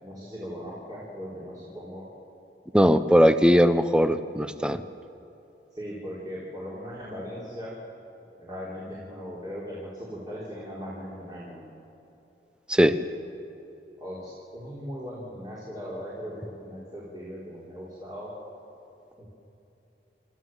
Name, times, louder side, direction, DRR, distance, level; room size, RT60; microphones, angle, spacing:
voice 1, 0.0-2.1 5.8-7.7 8.3-11.6 14.0-18.3 19.2-19.3, equal, 25° right, -7 dB, 3.7 m, -38 dB
voice 2, 2.7-4.8 12.7-13.0, equal, 5° right, 11 dB, 0.6 m, -19 dB
29.5 x 13.5 x 7.5 m, 2.9 s
head